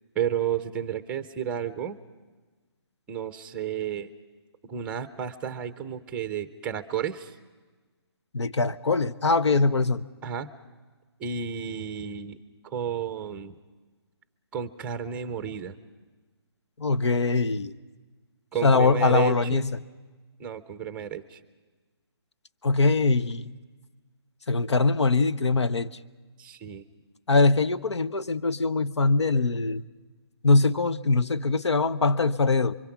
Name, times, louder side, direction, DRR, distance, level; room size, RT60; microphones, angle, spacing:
voice 1, 0.1-2.0 3.1-4.1 4.7-7.3 10.2-10.5 11.2-12.4 12.6-13.6 14.5-15.8 18.5-19.7 20.4-21.4 26.4-26.8, right 8 dB, 5° right, 12 dB, 0.6 m, -32 dB
voice 2, 8.3-10.1 16.8-17.7 18.6-19.8 22.6-23.5 24.5-25.9 27.3-29.8 30.4-32.8, left 3 dB, 85° left, 13 dB, 1.0 m, -22 dB
26.5 x 24.0 x 5.9 m, 1.3 s
hypercardioid pair, 165°, 14 cm